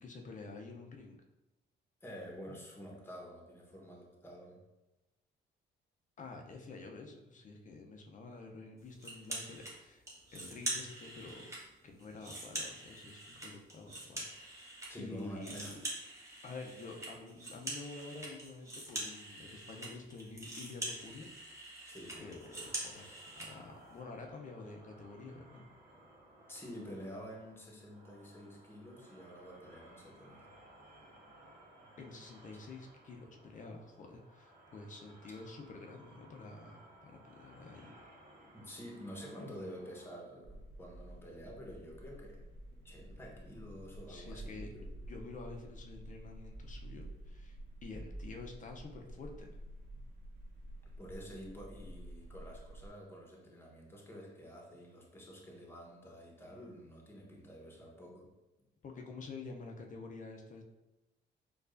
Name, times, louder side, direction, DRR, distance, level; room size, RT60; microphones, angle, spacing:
voice 1, 0.0-1.2 6.2-10.0 10.3-11.5 11.8-15.8 16.4-21.7 22.2-25.6 32.0-37.9 44.1-49.5 49.9-50.0 58.8-60.6, left 3 dB, 40° left, 3 dB, 0.5 m, -49 dB
voice 2, 2.0-4.6 14.9-15.8 21.9-22.3 26.5-30.5 38.5-42.4 42.8-44.9 51.0-58.3, equal, 10° left, -1 dB, 0.9 m, -49 dB
sound 1, 9.0-9.7 10.1-11.6 12.0-14.9 15.2-23.5, right 1 dB, 15° right, 1.1 m, -44 dB
sound 2, 22.1-40.1, right 1 dB, 50° right, 1.3 m, -60 dB
sound 3, 40.4-52.9, right 1 dB, 65° right, 0.9 m, -49 dB
4.5 x 2.3 x 2.5 m, 0.99 s
cardioid pair, 90°, 20 cm